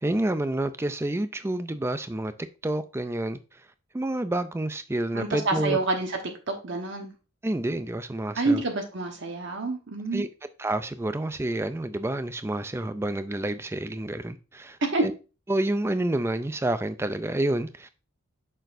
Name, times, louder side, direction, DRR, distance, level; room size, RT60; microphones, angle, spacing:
voice 1, 0.0-2.3 2.6-3.4 3.9-5.8 7.4-8.6 10.1-10.3 10.6-15.1 15.5-17.9, right 1 dB, 10° right, 0.3 m, -28 dB
voice 2, 5.1-6.1 6.5-7.1 8.3-10.2 14.9-15.0, right 3 dB, 60° right, 1.1 m, -27 dB
6.6 x 6.0 x 2.6 m
head